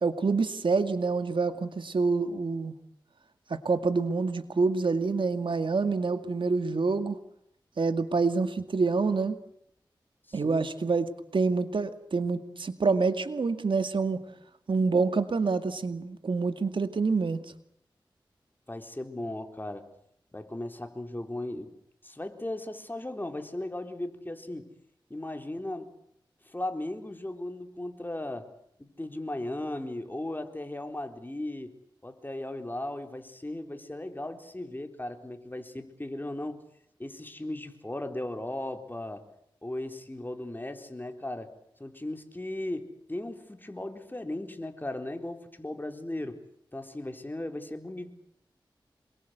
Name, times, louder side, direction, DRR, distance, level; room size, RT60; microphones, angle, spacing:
voice 1, 0.0-2.7 3.5-7.2 7.8-9.4 10.3-11.1 11.3-14.2 14.7-17.4, right 4 dB, 75° right, 10 dB, 2.1 m, -27 dB
voice 2, 10.3-10.7 18.7-19.9 20.3-21.7 22.0-24.7 25.1-25.9 26.4-28.5 28.8-31.7 32.0-36.6 37.0-39.2 39.6-41.5 41.8-46.4 46.7-48.2, left 1 dB, 25° left, 6 dB, 4.0 m, -37 dB
27.5 x 22.5 x 8.1 m, 0.72 s
cardioid pair, 50°, 9 cm